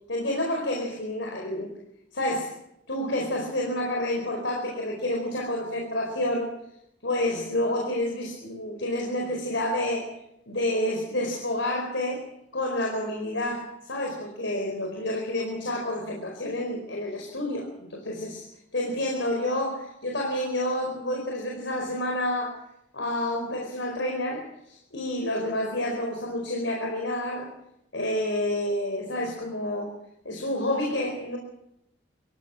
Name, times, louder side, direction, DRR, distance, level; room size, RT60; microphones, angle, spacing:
voice 1, 0.1-1.7 2.1-2.6 2.9-6.5 7.0-10.1 10.5-12.2 12.5-22.6 22.9-27.5 27.9-29.9 30.2-31.4, left 1 dB, 75° left, 1 dB, 4.7 m, -29 dB
25.5 x 16.0 x 7.6 m, 0.81 s
head